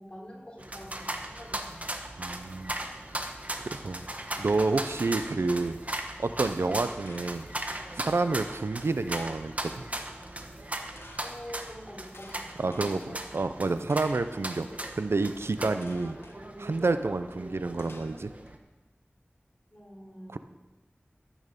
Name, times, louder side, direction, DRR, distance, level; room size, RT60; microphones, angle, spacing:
voice 1, 0.0-1.9 11.2-13.2 19.7-20.4, equal, 25° left, -3 dB, 3.4 m, -46 dB
sound 1, 0.6-18.6, right 1 dB, 35° right, 1.2 m, -38 dB
voice 2, 2.2-2.8 3.6-4.0 4.4-5.8 6.2-7.5 7.9-9.8 12.6-13.0 13.3-14.7 15.0-16.2 16.6-18.3 20.3-20.4, right 3 dB, 85° right, 10 dB, 0.6 m, -29 dB
sound 2, 4.9-5.7 7.1-7.7 9.1-9.6 11.0-11.3 12.1-12.9 13.9-14.4 15.8-16.4 17.8-18.5, left 2 dB, 70° left, 1.3 m, -52 dB
13.0 x 8.9 x 5.3 m, 1.1 s
wide cardioid pair, 60°, 4 cm